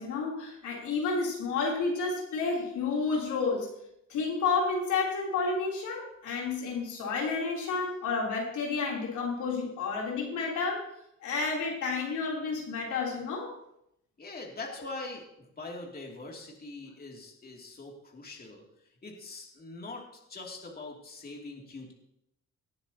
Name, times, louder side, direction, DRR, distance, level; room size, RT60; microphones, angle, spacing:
voice 1, 0.0-3.7 4.1-10.8 11.2-13.5, left 4 dB, 80° left, -2 dB, 3.4 m, -30 dB
voice 2, 14.2-18.6 19.0-21.9, left 2 dB, 30° left, -1 dB, 2.6 m, -43 dB
18.5 x 9.7 x 2.9 m, 0.79 s
cardioid pair, 90°, 30 cm